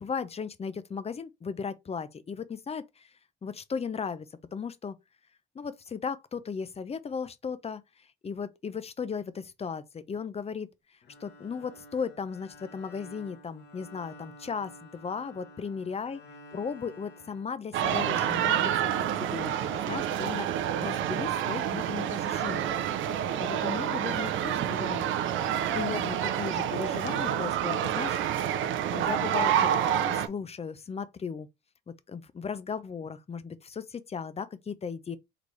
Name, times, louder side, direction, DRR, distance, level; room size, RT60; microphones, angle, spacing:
voice 1, 0.0-3.1 3.4-5.0 5.5-7.8 8.2-10.7 11.2-16.2 16.5-22.8 23.1-25.4 25.7-29.7 30.1-31.5 32.1-35.2, left 6 dB, 30° left, 0.6 m, -36 dB
Bowed string instrument, 11.0-18.2, left 1 dB, 60° left, 1.2 m, -51 dB
sound 1, 17.7-30.3, right 10 dB, 75° right, 0.6 m, -28 dB
3.9 x 3.3 x 3.2 m
cardioid pair, 90°, 20 cm